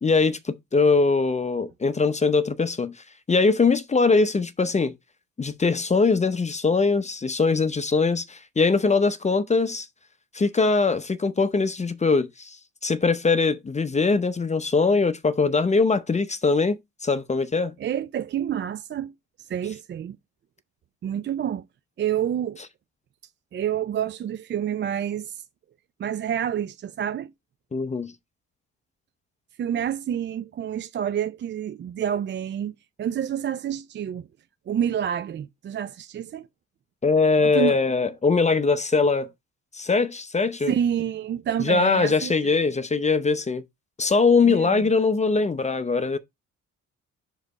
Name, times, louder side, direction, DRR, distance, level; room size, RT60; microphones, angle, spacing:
voice 1, 0.0-2.9 3.3-4.9 5.4-9.9 10.3-12.6 12.8-17.7 27.7-28.1 37.0-39.3 39.7-40.7 41.6-43.6 44.0-46.2, left 4 dB, 25° left, 0.7 m, -22 dB
voice 2, 17.8-19.1 19.4-20.2 21.0-21.6 22.0-22.6 23.5-25.4 26.0-27.3 29.6-32.7 33.0-34.3 34.7-36.5 37.4-37.8 40.7-42.6 44.4-44.9, right 9 dB, 40° right, 0.4 m, -28 dB
5.0 x 3.9 x 5.3 m
cardioid pair, 90°, 30 cm